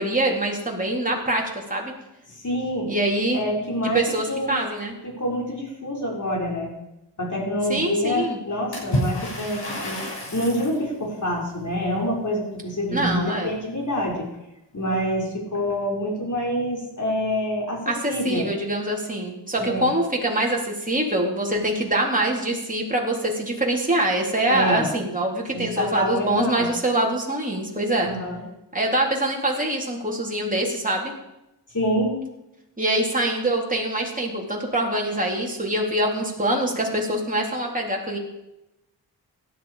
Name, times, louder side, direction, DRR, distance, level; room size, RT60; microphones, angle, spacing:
voice 1, 0.0-1.9 2.9-3.4 3.9-4.9 7.7-8.4 12.9-13.6 17.9-28.1 28.7-31.1 32.8-38.2, right 1 dB, 20° right, -1 dB, 3.7 m, -24 dB
voice 2, 2.4-2.9 3.3-4.0 4.3-4.6 5.0-6.7 7.2-10.0 10.3-14.3 14.7-17.8 18.1-18.5 19.6-19.9 24.5-24.9 25.5-26.7 28.0-28.4 31.7-32.1, equal, 45° left, -2 dB, 6.2 m, -26 dB
Water / Splash splatter, 8.7-10.8, equal, 75° left, 7.1 m, -29 dB
17.0 x 12.0 x 5.1 m, 0.92 s
cardioid pair, 65°, 42 cm